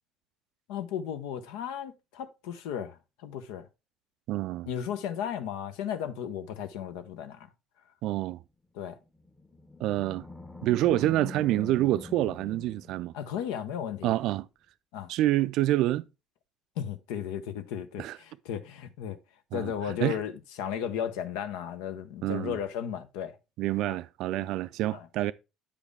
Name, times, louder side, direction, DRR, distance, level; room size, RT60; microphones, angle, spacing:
voice 1, 0.7-3.7 4.7-7.5 8.7-9.0 13.1-14.2 14.9-15.1 16.8-19.2 19.5-23.4 23.9-24.0 24.9-25.1, left 9 dB, 65° left, 0.6 m, -35 dB
voice 2, 4.3-4.7 8.0-8.4 9.8-10.2 10.6-13.1 14.0-14.5 15.1-16.1 18.0-18.2 19.5-19.7 20.0-20.2 22.2-22.6 23.6-25.3, right 15 dB, 60° right, 0.4 m, -27 dB
Animal, 9.1-13.6, left 2 dB, 10° left, 1.0 m, -44 dB
8.4 x 5.0 x 3.3 m
figure-of-eight pair, 55°, 0 cm